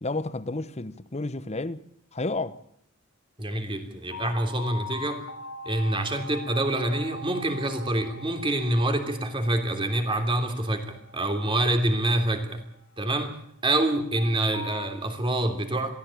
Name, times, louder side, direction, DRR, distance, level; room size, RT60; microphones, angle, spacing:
voice 1, 0.0-1.8 2.1-2.6, left 2 dB, 30° left, 1.0 m, -31 dB
voice 2, 3.4-5.2 5.6-12.6 13.0-13.4 13.6-15.9, right 1 dB, 25° right, 3.2 m, -26 dB
sound 1, 4.1-13.2 14.2-14.9, left 2 dB, 80° left, 3.0 m, -42 dB
23.0 x 16.0 x 8.5 m
head